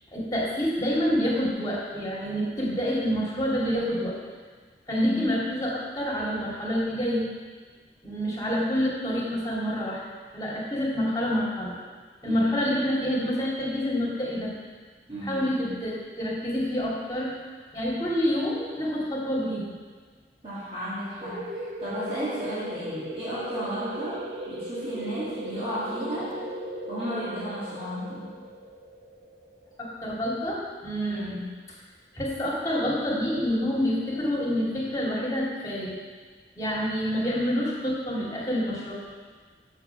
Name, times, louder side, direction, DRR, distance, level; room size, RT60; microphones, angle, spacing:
voice 1, 0.1-4.2 4.9-7.3 8.0-10.0 10.3-11.8 12.2-14.5 15.2-17.3 17.7-19.7 29.8-31.4 32.1-36.0 36.6-39.0, equal, 20° left, -6 dB, 2.2 m, -27 dB
voice 2, 4.9-5.3 12.2-12.7 15.1-15.5 20.4-26.3 26.9-28.3 31.1-31.5, equal, 35° right, -12 dB, 2.5 m, -34 dB
sound 1, 21.2-30.5, right 1 dB, 80° right, 1.3 m, -37 dB
7.6 x 6.7 x 5.7 m, 1.5 s
head